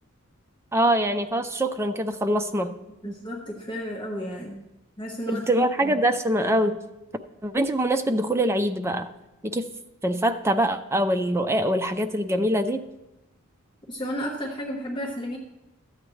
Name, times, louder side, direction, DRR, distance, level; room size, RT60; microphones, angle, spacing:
voice 1, 0.7-2.7 3.0-3.1 5.3-6.8 7.4-9.1 9.4-9.7 10.0-12.8, right 1 dB, 10° right, 7 dB, 0.4 m, -24 dB
voice 2, 3.0-4.6 5.0-5.9 13.9-15.4, equal, 20° left, -2 dB, 1.2 m, -32 dB
14.0 x 8.7 x 3.2 m, 0.95 s
head